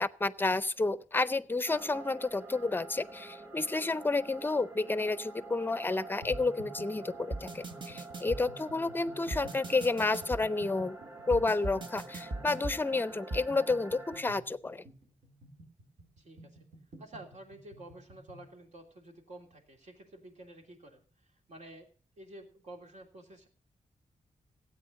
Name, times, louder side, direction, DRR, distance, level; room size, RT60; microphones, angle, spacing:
voice 1, 0.0-11.0 11.3-14.8, left 3 dB, 15° left, 15 dB, 0.6 m, -30 dB
sound 1, 1.7-14.2, right 2 dB, 15° right, 1.0 m, -48 dB
sound 2, 6.2-18.5, right 1 dB, 80° right, 3.9 m, -52 dB
sound 3, 6.3-6.4 7.3-8.4 9.3-10.4 11.3-12.8 13.3-13.4, right 2 dB, 40° right, 1.4 m, -38 dB
voice 2, 16.2-16.6 17.0-21.9 22.2-23.5, right 1 dB, 65° right, 2 dB, 3.2 m, -51 dB
17.0 x 8.6 x 5.3 m, 0.41 s
wide cardioid pair, 140°, 13 cm